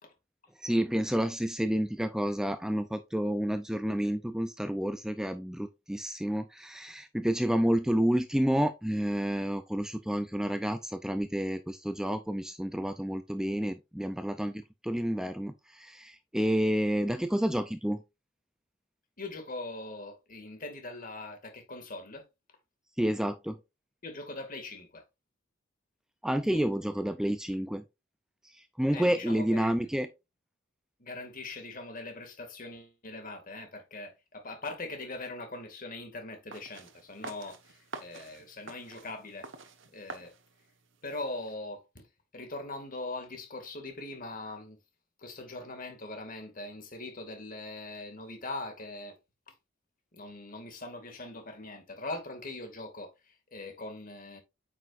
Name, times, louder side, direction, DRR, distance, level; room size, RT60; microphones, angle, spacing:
voice 1, 0.6-18.0 23.0-23.6 26.2-27.8 28.5-30.1, equal, 5° right, 0.5 m, -30 dB
voice 2, 19.2-22.2 24.0-25.0 26.5-26.7 28.9-29.7 31.0-39.5 39.9-40.3 41.0-42.0 42.3-44.8 45.2-49.1 49.5-49.6 50.1-54.4, left 2 dB, 45° left, 2.2 m, -41 dB
sound 1, 36.5-41.5, right 3 dB, 70° right, 1.2 m, -48 dB
8.9 x 6.3 x 2.5 m
head